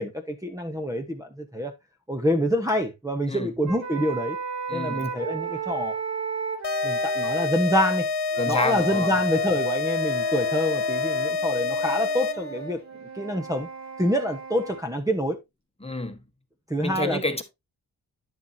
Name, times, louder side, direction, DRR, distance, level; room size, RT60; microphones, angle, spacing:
voice 1, 0.0-1.7 2.1-4.4 4.7-5.9 6.8-8.1 8.5-13.7 14.0-15.4 16.7-17.2, equal, 10° right, 1.1 m, -26 dB
sound 1, 3.7-7.5 8.3-14.8, right 2 dB, 45° right, 2.8 m, -34 dB
voice 2, 4.7-5.1 8.4-9.1 15.8-16.2 16.8-17.4, left 2 dB, 15° left, 1.4 m, -29 dB
sound 2, 6.6-12.6, left 4 dB, 80° left, 0.9 m, -27 dB
10.5 x 7.0 x 2.7 m
wide cardioid pair, 100°, 40 cm